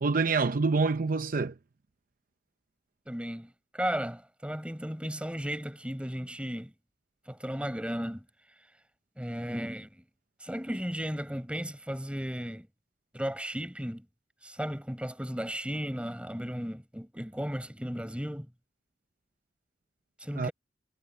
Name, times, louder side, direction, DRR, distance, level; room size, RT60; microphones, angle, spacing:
voice 1, 0.0-1.5 20.4-20.5, right 4 dB, 50° right, 0.6 m, -26 dB
voice 2, 3.1-6.7 7.3-8.2 9.2-10.0 10.4-12.7 13.1-14.0 14.4-18.5 20.2-20.5, equal, 5° right, 5.1 m, -35 dB
head